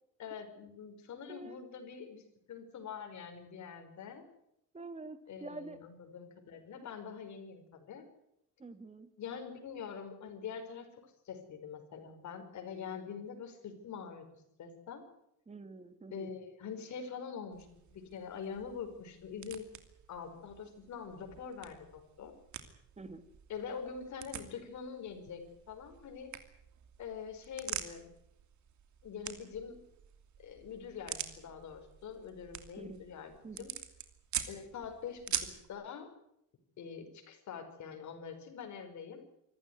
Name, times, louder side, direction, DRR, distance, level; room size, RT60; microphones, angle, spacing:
voice 1, 0.2-2.2 2.5-4.2 5.3-8.1 9.2-10.9 11.3-14.3 14.6-15.0 16.1-19.6 20.1-22.3 23.5-26.3 27.0-28.1 29.0-29.8 30.4-33.7 34.5-36.1 36.8-39.2, left 6 dB, 65° left, 5 dB, 5.3 m, -44 dB
voice 2, 1.3-1.6 4.7-5.8 8.6-9.1 15.5-16.3 23.0-23.3 32.8-33.0 33.4-33.7, right 3 dB, 20° right, 10 dB, 2.2 m, -47 dB
sound 1, 17.5-35.7, right 10 dB, 65° right, 2.9 m, -46 dB
25.5 x 14.5 x 9.5 m, 0.80 s
cardioid pair, 145°, 31 cm